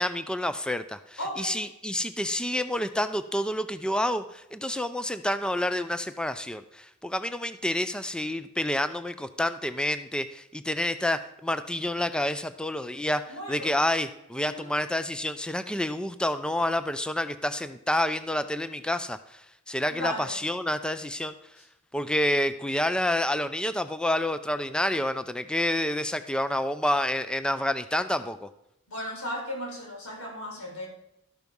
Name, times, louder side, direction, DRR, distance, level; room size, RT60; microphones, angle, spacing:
voice 1, 0.0-13.2 13.5-19.2 19.7-21.3 21.9-28.5, left 1 dB, 5° left, 11 dB, 0.4 m, -28 dB
voice 2, 1.2-1.6 13.3-13.7 14.4-14.7 20.0-20.4 28.9-30.9, equal, 75° left, -1 dB, 4.3 m, -35 dB
13.0 x 6.2 x 5.3 m, 0.83 s
head